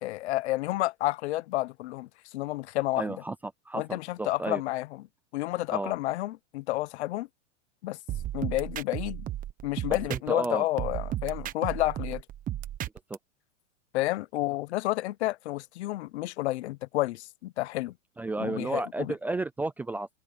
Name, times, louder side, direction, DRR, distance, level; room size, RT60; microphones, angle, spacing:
voice 1, 0.0-2.1 2.3-3.0 3.7-4.9 5.3-7.3 7.8-8.0 8.3-9.3 9.6-12.2 13.9-17.9 18.4-19.1, left 17 dB, 60° left, 1.0 m, -30 dB
voice 2, 3.0-4.6 5.7-5.9 10.1-10.7 13.1-13.2 18.2-20.1, right 2 dB, 5° right, 0.4 m, -32 dB
sound 1, 8.1-10.5 10.8-13.2, right 12 dB, 20° right, 1.2 m, -34 dB
supercardioid pair, 145°, 39 cm